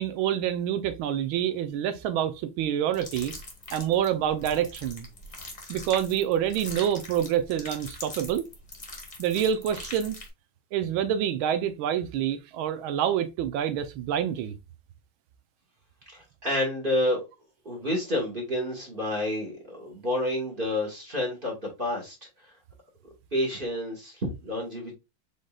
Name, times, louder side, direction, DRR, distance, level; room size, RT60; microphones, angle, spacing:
voice 1, 0.0-3.3 3.7-5.1 5.7-8.4 9.2-10.2 10.7-14.5, right 10 dB, 75° right, 1.5 m, -27 dB
sound 1, 2.9-10.3, left 2 dB, 25° left, 1.1 m, -42 dB
voice 2, 16.1-17.2 17.6-22.1 23.3-25.0, left 1 dB, 30° right, 1.5 m, -29 dB
5.1 x 3.9 x 2.4 m
omnidirectional pair, 2.3 m